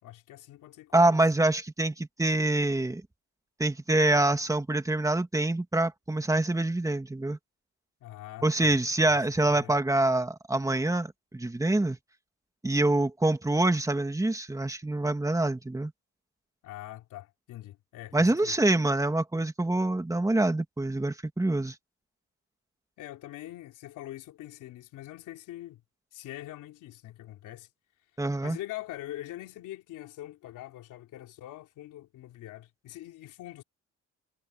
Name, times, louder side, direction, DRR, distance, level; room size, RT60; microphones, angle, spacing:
voice 1, 0.0-1.2 8.0-9.8 16.6-18.6 23.0-25.8 26.1-27.7 28.4-33.6, left 14 dB, 90° left, 3.4 m, -44 dB
voice 2, 0.9-3.0 3.6-7.4 8.4-12.0 12.6-15.9 18.1-21.7 28.2-28.6, right 2 dB, 10° right, 2.4 m, -25 dB
cardioid pair, 90°, 30 cm